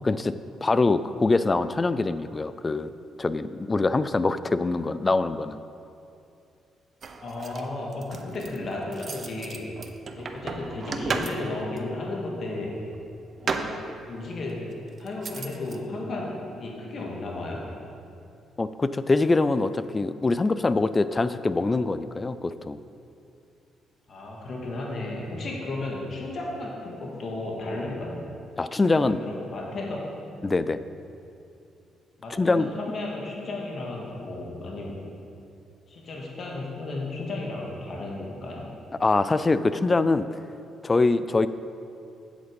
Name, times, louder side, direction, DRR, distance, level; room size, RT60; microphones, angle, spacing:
voice 1, 0.6-2.9 3.2-5.6 18.6-22.8 28.6-29.2 30.4-30.8 32.4-32.7 39.0-40.4 40.8-41.5, left 3 dB, 25° left, 13 dB, 0.4 m, -24 dB
sound 1, 7.0-11.8 12.9-14.2 14.9-15.8, right 4 dB, 45° right, 0.6 m, -34 dB
voice 2, 7.2-9.7 10.1-12.8 13.4-13.8 14.1-14.7 15.0-17.7 24.1-28.3 28.9-30.1 32.2-35.0 35.9-38.7, left 2 dB, 55° left, -2 dB, 1.9 m, -34 dB
8.0 x 7.8 x 5.3 m, 2.6 s
cardioid pair, 90°, 0 cm